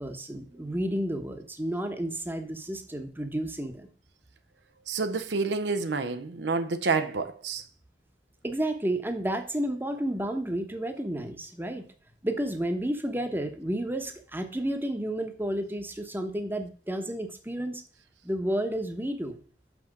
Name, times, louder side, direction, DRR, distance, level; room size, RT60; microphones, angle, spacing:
voice 1, 0.0-3.9 8.4-11.9 12.2-17.8 18.2-19.4, right 1 dB, 10° right, 1.0 m, -31 dB
voice 2, 4.9-7.6, right 4 dB, 75° right, 0.7 m, -28 dB
6.1 x 5.9 x 6.5 m
head